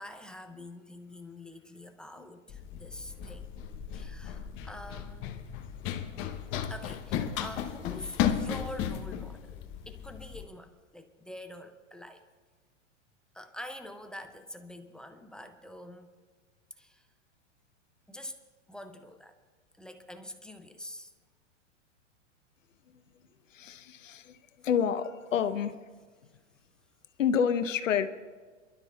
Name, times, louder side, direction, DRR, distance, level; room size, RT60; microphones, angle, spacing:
voice 1, 0.0-3.5 3.9-5.4 6.6-12.2 13.3-16.1 16.8-17.1 18.1-18.4 18.7-19.4 19.8-21.1 26.3-26.4, left 1 dB, ahead, 6 dB, 0.4 m, -46 dB
Run, 2.5-10.4, left 9 dB, 35° left, 0.9 m, -35 dB
voice 2, 23.5-24.4 24.6-25.7 27.2-28.1, left 7 dB, 85° left, 10 dB, 0.9 m, -28 dB
29.5 x 12.0 x 2.3 m, 1.4 s
hypercardioid pair, 125°, 37 cm